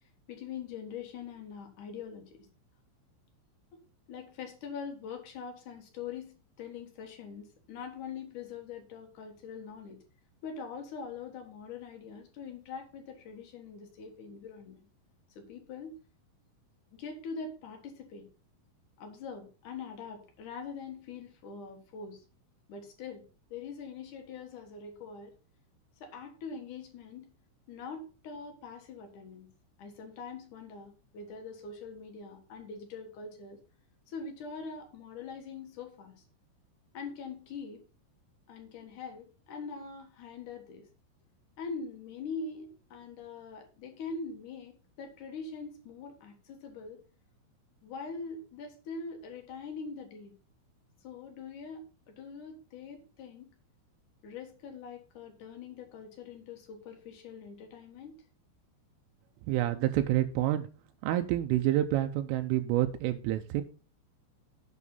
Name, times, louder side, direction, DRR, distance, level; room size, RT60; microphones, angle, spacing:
voice 1, 0.3-2.5 4.1-10.0 10.4-14.8 15.3-16.0 16.9-18.2 19.0-22.2 22.7-23.2 23.5-25.3 26.0-27.3 27.7-29.5 29.8-33.6 34.1-36.2 36.9-37.8 38.5-40.9 41.6-47.0 47.8-50.3 51.0-51.8 52.2-53.5 54.2-58.1, left 5 dB, 60° left, 3 dB, 2.1 m, -43 dB
voice 2, 59.5-60.7 61.0-63.6, right 14 dB, 85° right, 7 dB, 3.2 m, -28 dB
8.5 x 6.0 x 5.4 m, 0.35 s
omnidirectional pair, 5.7 m